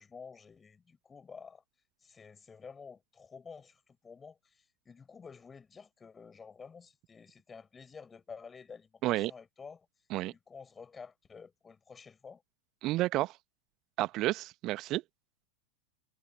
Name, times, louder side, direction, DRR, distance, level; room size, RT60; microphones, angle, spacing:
voice 1, 0.0-1.6 2.0-9.9 10.3-12.4, left 5 dB, 15° left, 6.2 m, -51 dB
voice 2, 12.8-13.3 14.0-15.0, right 17 dB, 35° right, 1.2 m, -30 dB
figure-of-eight pair, 90°, 0 cm